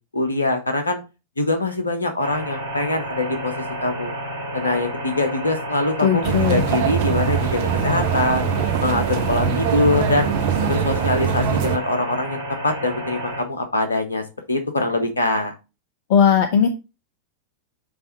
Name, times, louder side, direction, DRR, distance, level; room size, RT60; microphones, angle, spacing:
voice 1, 0.1-1.0 1.4-4.1 4.5-8.5 8.8-10.3 10.6-15.5, left 2 dB, 75° left, 7 dB, 1.2 m, -23 dB
sound 1, 2.2-13.4, right 1 dB, 75° right, 2.3 m, -31 dB
voice 2, 6.0-6.6 16.1-16.7, left 7 dB, 50° left, 8 dB, 0.7 m, -17 dB
sound 2, 6.2-11.8, right 7 dB, 50° right, 0.8 m, -22 dB
8.8 x 3.5 x 4.1 m, 0.29 s
figure-of-eight pair, 90°, 0 cm